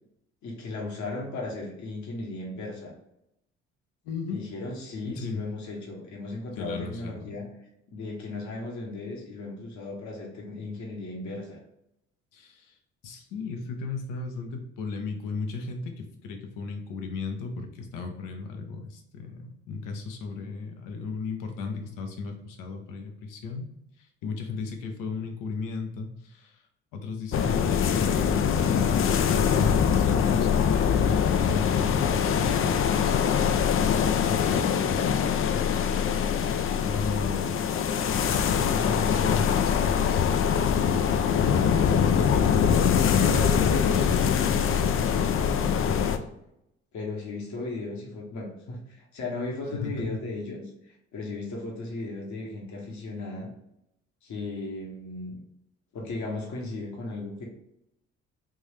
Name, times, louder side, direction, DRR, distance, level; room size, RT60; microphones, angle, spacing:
voice 1, 0.4-2.9 4.3-7.5 7.9-11.6 43.1-46.2 46.9-53.5 54.2-55.4 55.9-57.4, left 2 dB, 55° left, -2 dB, 1.2 m, -36 dB
voice 2, 4.0-4.4 5.0-5.4 6.6-7.3 12.3-12.7 13.0-23.6 24.0-26.6 26.9-28.9 29.3-32.3 34.3-35.1 35.4-35.7 36.8-37.6 38.3-42.7 49.7-50.0, left 4 dB, 70° left, 4 dB, 0.8 m, -35 dB
sound 1, 27.3-46.2, left 7 dB, 40° left, 0.4 m, -23 dB
3.6 x 2.6 x 3.2 m, 0.80 s
hypercardioid pair, 55°, 33 cm